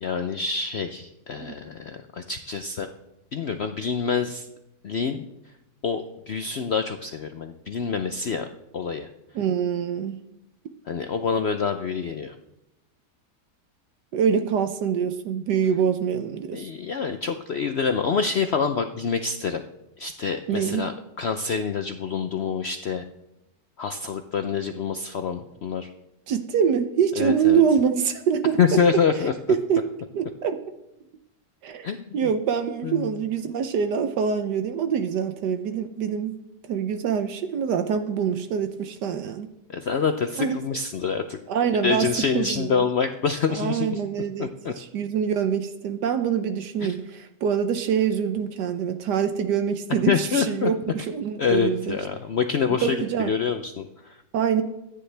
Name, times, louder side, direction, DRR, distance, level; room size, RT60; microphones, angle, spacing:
voice 1, 0.0-2.9 3.3-4.5 4.8-5.3 5.8-8.5 8.7-9.1 10.9-12.3 16.5-19.6 20.0-20.9 21.2-23.0 23.8-25.9 27.2-27.6 28.6-29.3 31.8-32.3 32.8-33.2 39.7-41.4 41.8-44.0 44.4-44.7 46.8-47.0 50.1-50.7 51.4-54.2, left 6 dB, 70° left, 7 dB, 0.6 m, -26 dB
voice 2, 9.3-10.2 14.1-16.7 20.5-20.9 26.3-28.8 29.5-29.8 30.1-30.6 31.6-36.4 36.7-39.5 40.4-40.5 41.5-42.1 42.3-42.8 43.5-52.0 52.7-53.3 54.3-54.6, right 7 dB, 75° right, 8 dB, 1.3 m, -25 dB
23.5 x 10.0 x 3.4 m, 0.91 s
omnidirectional pair, 1.9 m